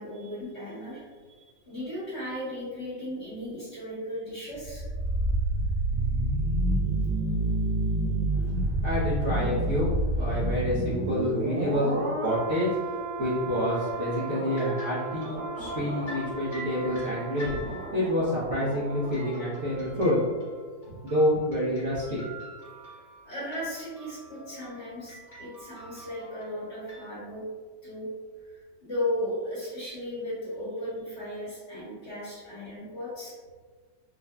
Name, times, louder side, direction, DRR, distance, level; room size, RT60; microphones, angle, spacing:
voice 1, 0.0-4.8 8.2-8.5 15.2-15.3 22.9-27.4 27.8-28.1 28.4-33.4, left 1 dB, 40° left, -10 dB, 1.4 m, -36 dB
sound 1, 4.5-19.5 19.8-19.9, right 2 dB, 70° right, 1.2 m, -30 dB
voice 2, 8.8-9.9 10.2-17.6 17.9-20.2 20.9-22.2, left 1 dB, 50° right, -10 dB, 1.0 m, -28 dB
sound 2, 13.7-18.1 19.1-27.1, left 1 dB, 25° left, 1.3 m, -46 dB
4.7 x 2.6 x 2.2 m, 1.5 s
omnidirectional pair, 2.0 m